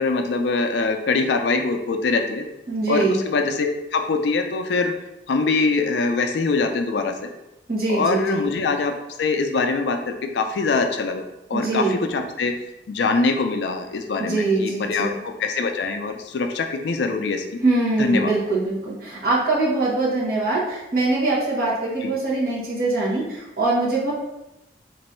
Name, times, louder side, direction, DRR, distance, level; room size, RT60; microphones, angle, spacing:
voice 1, 0.0-2.5 2.9-4.9 5.3-7.1 7.9-8.9 9.2-11.2 11.5-12.5 12.9-17.6 18.0-18.3 22.0-22.1, left 3 dB, 75° left, 5 dB, 0.4 m, -23 dB
voice 2, 2.7-3.2 7.7-8.5 11.5-12.0 14.2-15.2 17.6-24.1, right 2 dB, 55° right, -6 dB, 1.2 m, -23 dB
3.0 x 2.6 x 4.3 m, 0.94 s
head